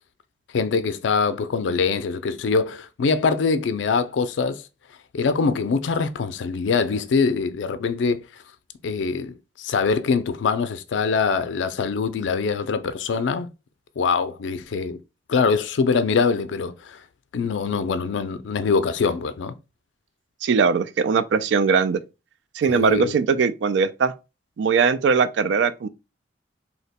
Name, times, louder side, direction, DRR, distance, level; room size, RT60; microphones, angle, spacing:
voice 1, 0.5-4.6 5.1-8.2 8.8-13.5 14.0-15.0 15.3-17.0 17.3-19.5 22.7-23.1, left 5 dB, 80° left, 0.4 m, -23 dB
voice 2, 20.4-22.0 22.5-24.1 24.6-25.9, right 5 dB, 70° right, 0.3 m, -20 dB
2.8 x 2.1 x 4.1 m
head